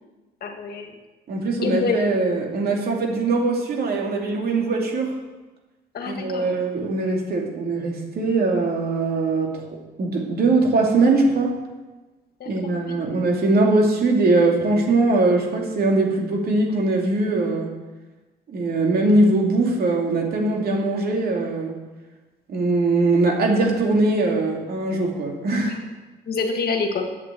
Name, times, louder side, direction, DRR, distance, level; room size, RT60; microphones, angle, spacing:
voice 1, 0.4-0.9 1.6-2.0 2.9-3.0 5.9-6.4 12.4-13.0 25.7-25.8 26.3-27.1, left 4 dB, 55° left, 4 dB, 2.0 m, -27 dB
voice 2, 1.3-5.1 6.1-9.7 10.0-11.6 12.5-17.7 18.5-21.7 22.5-25.8, right 2 dB, 55° right, 0 dB, 2.9 m, -21 dB
9.3 x 8.5 x 7.7 m, 1.2 s
cardioid pair, 95°, 19 cm